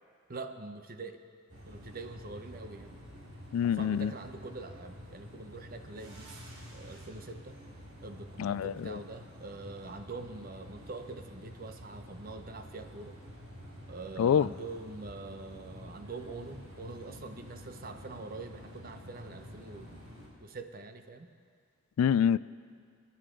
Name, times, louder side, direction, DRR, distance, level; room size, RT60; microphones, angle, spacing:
voice 1, 0.3-1.2 1.7-3.0 3.7-7.6 8.0-13.2 13.9-20.0 20.4-21.3, right 3 dB, 45° right, 7 dB, 0.8 m, -44 dB
sound 1, 1.5-20.3, equal, 75° right, 3.9 m, -49 dB
voice 2, 3.5-4.1 8.4-9.0 14.2-14.5 22.0-22.4, left 8 dB, 85° left, 19 dB, 0.3 m, -26 dB
28.0 x 10.0 x 3.8 m, 2.1 s
head